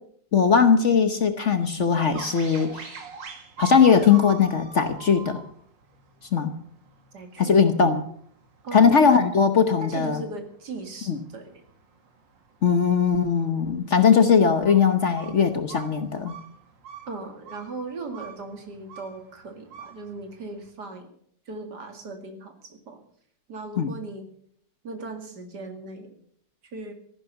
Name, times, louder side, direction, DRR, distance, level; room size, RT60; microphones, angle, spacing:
voice 1, 0.3-3.0 3.6-5.4 6.3-6.5 7.4-8.0 8.7-10.2 11.1-11.2 12.6-16.3 23.8-23.9, left 6 dB, 45° left, 9 dB, 1.2 m, -19 dB
sound 1, 2.1-20.7, right 7 dB, 85° right, 2.6 m, -45 dB
voice 2, 7.1-7.6 8.6-8.9 9.8-11.5 17.1-21.1 21.5-23.0 23.5-24.3 24.8-26.1 26.7-26.9, right 3 dB, 65° right, 6 dB, 2.8 m, -38 dB
14.5 x 11.5 x 6.9 m, 0.64 s
omnidirectional pair, 1.9 m